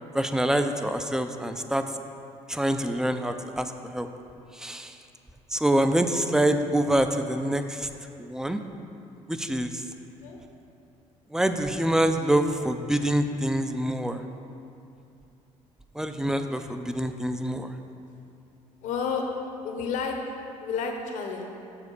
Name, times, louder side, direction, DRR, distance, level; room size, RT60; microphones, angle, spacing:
voice 1, 0.1-1.8 2.5-3.7 3.9-4.1 4.6-4.9 5.5-7.9 8.2-8.6 9.3-9.7 11.3-14.2 16.0-17.7, right 1 dB, 5° right, 8 dB, 0.4 m, -25 dB
voice 2, 18.8-19.2 19.6-20.1 20.6-21.5, left 6 dB, 75° left, 3 dB, 1.0 m, -30 dB
7.3 x 4.3 x 6.6 m, 2.6 s
cardioid pair, 110°, 13 cm